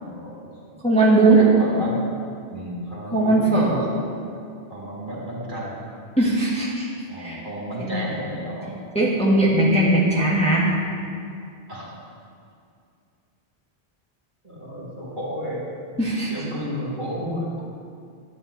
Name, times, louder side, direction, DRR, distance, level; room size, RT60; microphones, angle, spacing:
voice 1, 0.0-0.5 1.4-2.0 2.5-3.5 4.7-5.8 7.1-8.7 11.7-11.9 14.4-15.6 16.3-17.5, equal, 50° right, -5 dB, 2.4 m, -32 dB
voice 2, 0.8-1.4 3.1-3.9 6.2-6.9 7.2-7.4 7.8-7.9 8.9-10.7 16.0-16.3, right 2 dB, 5° left, -6 dB, 1.5 m, -19 dB
12.0 x 8.7 x 4.0 m, 2.4 s
omnidirectional pair, 1.1 m